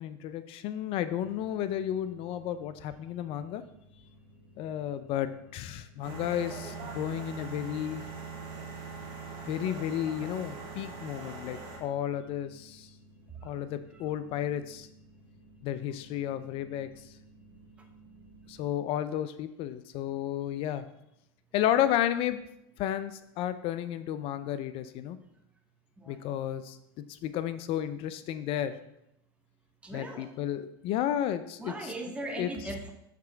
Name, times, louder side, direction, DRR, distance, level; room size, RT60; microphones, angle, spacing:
voice 1, 0.0-3.6 4.6-8.0 9.5-12.9 13.4-14.9 15.6-16.9 18.5-20.8 21.5-22.4 22.8-25.2 26.1-26.8 27.1-28.7 29.9-31.9 32.4-32.5, left 11 dB, 50° left, 12 dB, 0.5 m, -32 dB
sound 1, 1.2-18.7, right 1 dB, 65° left, 2.3 m, -57 dB
sound 2, 6.0-11.8, right 4 dB, 45° right, 2.7 m, -41 dB
voice 2, 29.8-30.3 31.6-32.9, right 1 dB, 10° right, 2 dB, 1.1 m, -38 dB
5.9 x 4.3 x 5.8 m, 0.81 s
hypercardioid pair, 110°, 13 cm